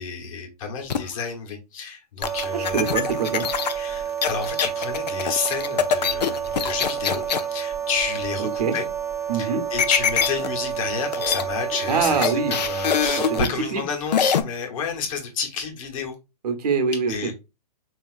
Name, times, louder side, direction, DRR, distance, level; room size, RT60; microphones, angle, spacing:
voice 1, 0.0-2.9 3.7-8.9 9.3-16.1 17.1-17.3, left 6 dB, 55° left, 2 dB, 1.2 m, -30 dB
sound 1, 0.9-1.2 2.2-7.5 9.8-10.5 10.8-10.9 11.1-11.4 11.7-13.5 14.1-14.4, left 8 dB, 90° left, 0.5 m, -24 dB
sound 2, 2.2-13.4, right 8 dB, 15° right, 0.4 m, -30 dB
voice 2, 2.5-3.5 8.4-8.7 9.3-9.6 11.9-12.5 13.3-13.5 13.7-13.8 16.4-17.3, right 5 dB, 70° right, 7 dB, 0.9 m, -24 dB
3.7 x 2.8 x 2.5 m, 0.27 s
hypercardioid pair, 130°, 21 cm